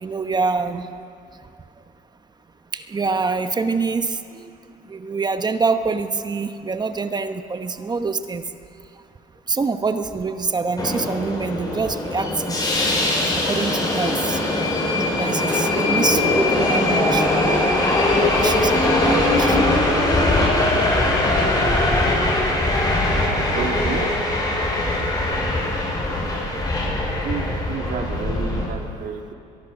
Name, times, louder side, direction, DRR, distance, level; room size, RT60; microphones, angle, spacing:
voice 1, 0.0-0.9 2.7-4.5 4.9-8.4 9.5-12.6 13.4-14.4 15.1-17.3 18.2-19.6, right 4 dB, 25° right, 8 dB, 1.1 m, -25 dB
Subway metro underground, 10.8-28.7, left 2 dB, 25° left, 6.8 m, -21 dB
voice 2, 23.5-24.1 24.7-25.1 25.4-25.5 27.2-29.3, right 6 dB, 60° right, 2 dB, 2.4 m, -31 dB
23.0 x 22.5 x 6.3 m, 2.6 s
cardioid pair, 110°, 17 cm